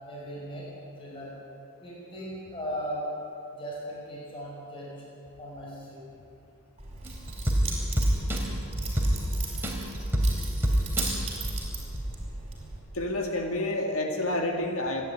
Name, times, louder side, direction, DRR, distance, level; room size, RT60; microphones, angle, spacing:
voice 1, 0.0-0.7 1.0-1.3 1.8-3.1 3.5-4.9 5.4-6.0 8.5-8.6, equal, 25° left, -5 dB, 5.5 m, -37 dB
Keys jangling, 6.8-12.8, right 3 dB, 30° right, 5.5 m, -38 dB
sound 1, 7.0-12.2 12.6-12.7, equal, 10° right, 2.8 m, -28 dB
voice 2, 12.9-15.1, left 1 dB, 70° left, 2 dB, 2.0 m, -29 dB
28.0 x 11.0 x 9.5 m, 2.5 s
head